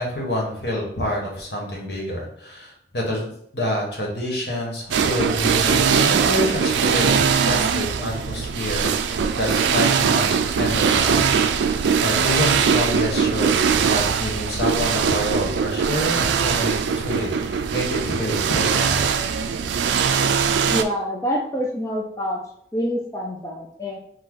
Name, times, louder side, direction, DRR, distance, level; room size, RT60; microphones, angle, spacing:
voice 1, 0.0-19.1, left 1 dB, 65° left, -1 dB, 1.3 m, -28 dB
sound 1, 4.9-20.8, right 6 dB, 80° right, 0.3 m, -21 dB
voice 2, 20.7-22.4 22.7-24.0, equal, 15° left, -2 dB, 0.4 m, -26 dB
4.1 x 2.4 x 4.7 m, 0.69 s
head